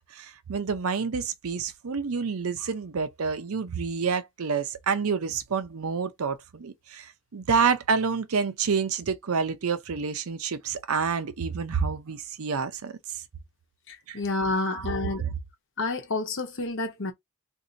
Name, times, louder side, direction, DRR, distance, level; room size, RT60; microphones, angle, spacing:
voice 1, 0.1-13.2 14.1-14.2 14.5-14.9 15.2-15.3, right 5 dB, 70° right, 0.6 m, -28 dB
voice 2, 13.9-15.2 15.8-17.1, left 2 dB, 55° left, 1.0 m, -29 dB
2.6 x 2.6 x 3.8 m
head